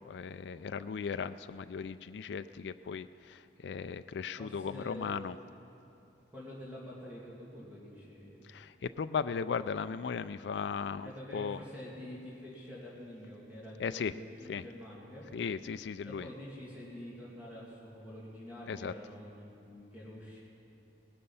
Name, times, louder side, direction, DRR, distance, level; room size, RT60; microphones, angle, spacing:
voice 1, 0.0-5.3 8.4-11.6 13.8-14.1 14.5-14.6 15.3-16.3 18.7-18.9, left 6 dB, 75° left, 11 dB, 0.4 m, -37 dB
voice 2, 4.4-5.1 6.3-8.4 11.0-15.3 16.0-20.4, left 1 dB, 10° right, -7 dB, 2.5 m, -47 dB
19.0 x 12.0 x 5.6 m, 2.9 s
head